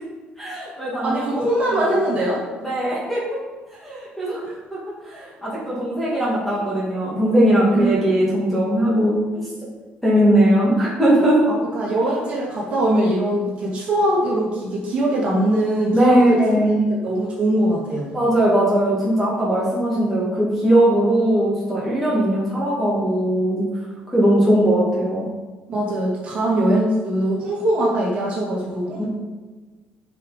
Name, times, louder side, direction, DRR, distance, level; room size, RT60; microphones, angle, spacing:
voice 1, 0.4-1.9 2.6-3.2 3.8-4.4 4.7-9.5 10.0-11.4 15.9-16.8 18.1-23.6 24.1-25.2 29.0-29.1, right 1 dB, 5° left, -7 dB, 2.1 m, -19 dB
voice 2, 1.0-2.4 4.5-4.6 7.7-8.0 11.5-16.7 17.0-18.1 25.7-29.0, right 1 dB, 40° right, -5 dB, 2.5 m, -22 dB
9.9 x 5.3 x 4.2 m, 1.3 s
cardioid pair, 175°, 3 cm